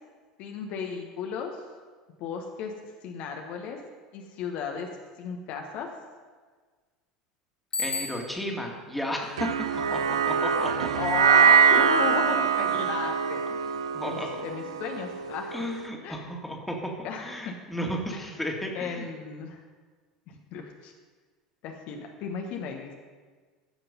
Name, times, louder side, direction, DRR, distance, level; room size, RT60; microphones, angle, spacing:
voice 1, 0.4-1.5 2.2-2.7 3.0-3.8 4.1-4.9 5.2-5.9 10.9-15.5 16.0-16.3 17.0-17.5 18.7-19.6 20.3-20.9 21.6-22.9, left 6 dB, 50° left, 2 dB, 1.1 m, -35 dB
Bicycle bell, 7.7-8.7, left 3 dB, 25° left, 0.9 m, -33 dB
voice 2, 7.8-10.9 12.7-12.8 13.9-14.4 15.5-16.9 17.2-19.1, equal, 5° left, 0 dB, 2.1 m, -34 dB
sound 1, 9.4-15.8, right 7 dB, 75° right, 0.6 m, -23 dB
14.5 x 5.9 x 5.3 m, 1.4 s
figure-of-eight pair, 70°, 3 cm